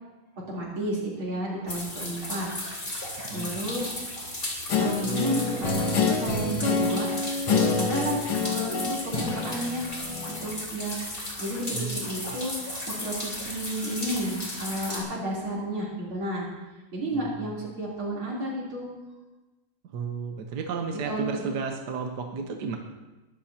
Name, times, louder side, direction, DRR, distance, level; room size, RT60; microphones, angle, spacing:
voice 1, 0.5-2.5 3.3-4.1 4.7-7.1 7.8-8.3 8.5-9.9 10.3-11.0 11.4-12.7 13.0-16.5 16.9-18.9 21.0-21.5, right 1 dB, 80° right, -5 dB, 4.5 m, -32 dB
sound 1, 1.7-15.0, left 1 dB, 25° left, 3.1 m, -35 dB
voice 2, 3.2-3.6 11.7-12.0 17.1-17.5 19.9-22.8, right 5 dB, 60° right, 3 dB, 1.5 m, -33 dB
Guitar, 4.7-10.5, left 4 dB, 85° left, 2.3 m, -27 dB
21.0 x 13.0 x 2.9 m, 1.1 s
omnidirectional pair, 2.3 m